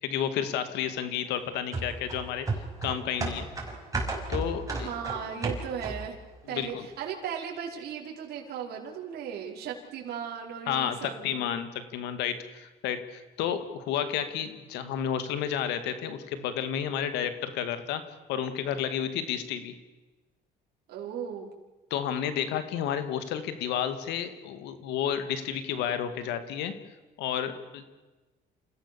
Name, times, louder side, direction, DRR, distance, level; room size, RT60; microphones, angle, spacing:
voice 1, 0.0-2.5 2.8-3.5 4.3-4.9 6.4-6.9 10.7-19.7 21.9-26.7 27.2-27.8, left 9 dB, 90° left, 10 dB, 2.2 m, -31 dB
sound 1, 1.7-6.2 6.6-6.7, right 3 dB, 20° right, 5.7 m, -33 dB
voice 2, 4.7-6.2 6.5-11.5 20.9-21.5, right 8 dB, 70° right, -2 dB, 5.1 m, -37 dB
28.0 x 16.5 x 7.1 m, 1.2 s
cardioid pair, 110°, 17 cm